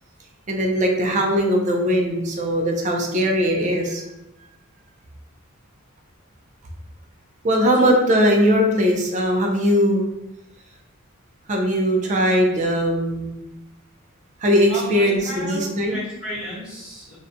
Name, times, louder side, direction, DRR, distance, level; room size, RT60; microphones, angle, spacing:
voice 1, 0.5-4.0 7.4-10.0 11.5-13.3 14.4-16.0, equal, 35° right, 1 dB, 0.4 m, -20 dB
voice 2, 7.7-8.2 14.7-17.2, left 1 dB, 5° right, -11 dB, 1.1 m, -33 dB
2.5 x 2.1 x 2.6 m, 0.92 s
head